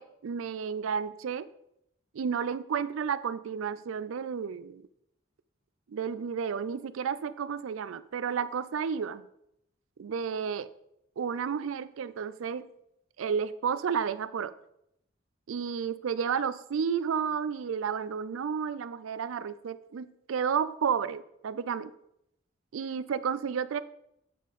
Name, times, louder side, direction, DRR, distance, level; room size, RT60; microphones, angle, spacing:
voice 1, 0.0-1.5 2.1-4.8 5.9-9.3 10.0-10.7 11.2-12.6 13.2-14.5 15.5-21.9 22.7-23.8, right 7 dB, 85° right, 16 dB, 0.4 m, -32 dB
8.3 x 4.3 x 5.1 m, 0.79 s
head